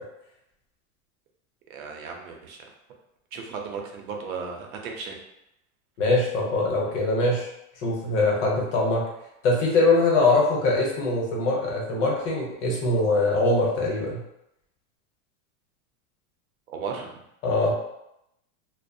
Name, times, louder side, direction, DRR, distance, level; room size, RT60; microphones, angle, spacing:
voice 1, 1.7-2.6 3.3-5.2 16.7-17.2, right 5 dB, 80° right, 2 dB, 0.6 m, -35 dB
voice 2, 6.0-7.5 7.8-9.0 9.4-14.2 17.4-17.7, left 2 dB, 55° left, -2 dB, 0.8 m, -22 dB
2.3 x 2.0 x 2.6 m, 0.83 s
supercardioid pair, 175°, 42 cm